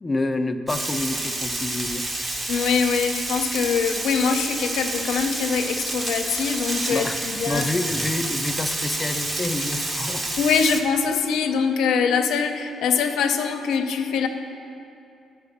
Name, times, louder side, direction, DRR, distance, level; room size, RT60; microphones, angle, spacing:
voice 1, 0.0-2.1 6.9-7.2 7.5-10.3, left 2 dB, 20° left, 7 dB, 0.5 m, -28 dB
Frying (food), 0.7-10.8, right 1 dB, 30° right, 1.0 m, -29 dB
voice 2, 2.5-7.6 10.4-14.3, left 6 dB, 85° left, 5 dB, 0.6 m, -23 dB
10.5 x 4.9 x 6.6 m, 2.6 s
cardioid pair, 90°, 0 cm